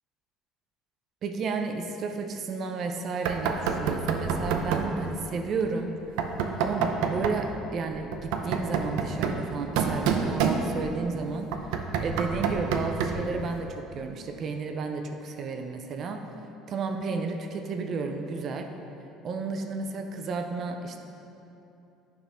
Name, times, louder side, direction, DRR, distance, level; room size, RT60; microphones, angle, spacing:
voice 1, 1.2-6.0 6.6-11.8 12.0-16.3 16.7-18.7 19.2-21.0, right 4 dB, 35° right, 5 dB, 0.5 m, -32 dB
Knock, 3.3-5.0 6.2-7.5 8.1-11.0 11.5-13.3, right 6 dB, 85° right, 0.6 m, -28 dB
10.0 x 5.7 x 3.5 m, 2.9 s
cardioid pair, 165°, 0 cm